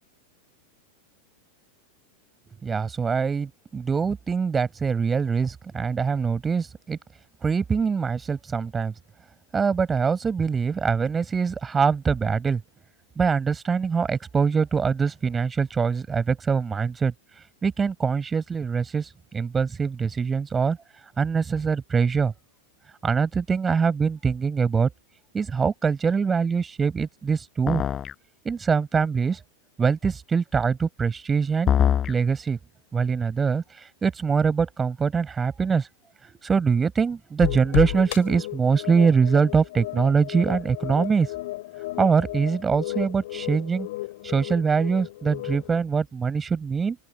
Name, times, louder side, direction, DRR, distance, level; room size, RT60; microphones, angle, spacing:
voice 1, 2.6-7.0 7.4-8.9 9.5-12.6 13.2-17.1 17.6-20.8 21.2-22.3 23.0-24.9 25.3-27.8 28.4-29.4 29.8-31.7 32.1-32.6 32.9-35.9 36.2-41.3 42.0-43.9 44.2-47.0, right 5 dB, 15° right, 6.1 m, -23 dB
sound 1, 27.7-28.1 31.7-32.1, left 9 dB, 25° left, 4.7 m, -22 dB
sound 2, 37.4-45.8, left 17 dB, 55° left, 6.0 m, -33 dB
open air
figure-of-eight pair, 90°, 0 cm